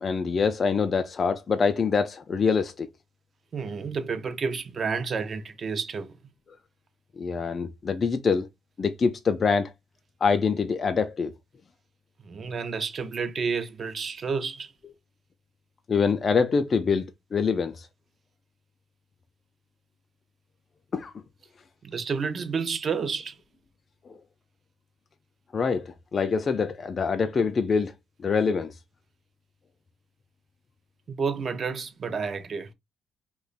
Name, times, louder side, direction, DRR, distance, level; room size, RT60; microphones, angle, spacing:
voice 1, 0.0-2.9 7.2-8.5 8.8-9.7 10.2-11.3 15.9-17.9 20.9-21.1 24.1-24.2 25.5-27.9 28.2-28.7, left 5 dB, 40° left, 0.4 m, -25 dB
voice 2, 3.5-6.2 12.2-14.7 21.8-23.4 31.1-32.7, right 5 dB, 45° right, 0.5 m, -30 dB
2.9 x 2.2 x 3.9 m
cardioid pair, 90°, 0 cm